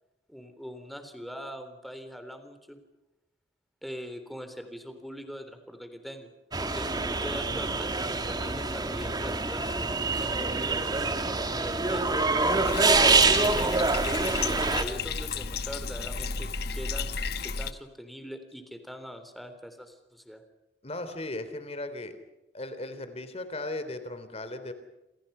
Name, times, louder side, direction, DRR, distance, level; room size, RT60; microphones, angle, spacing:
voice 1, 0.3-2.8 3.8-6.3 6.6-9.6 10.1-13.9 14.4-17.1 17.4-20.4, equal, ahead, 8 dB, 3.6 m, -42 dB
sound 1, 6.5-14.8, right 3 dB, 25° right, 1.8 m, -26 dB
voice 2, 11.9-12.3 20.8-22.1 22.5-24.7, left 2 dB, 35° left, 10 dB, 3.5 m, -37 dB
Bathtub (filling or washing), 12.6-17.7, left 5 dB, 60° left, 1.3 m, -33 dB
28.5 x 27.5 x 5.7 m, 0.93 s
head